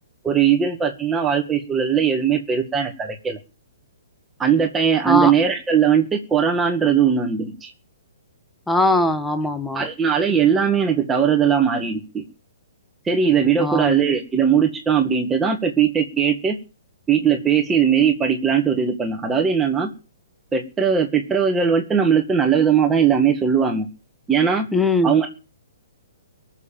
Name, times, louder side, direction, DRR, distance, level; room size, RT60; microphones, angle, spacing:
voice 1, 0.2-3.4 4.4-7.7 9.7-12.2 13.1-16.6 17.1-19.9 20.5-23.9 24.3-24.7 25.0-25.3, right 7 dB, 10° right, 3 dB, 1.9 m, -19 dB
voice 2, 8.7-9.9 13.6-13.9 24.7-25.1, left 2 dB, 5° left, 8 dB, 1.4 m, -20 dB
18.5 x 7.4 x 9.0 m, 0.34 s
hypercardioid pair, 150°, 0 cm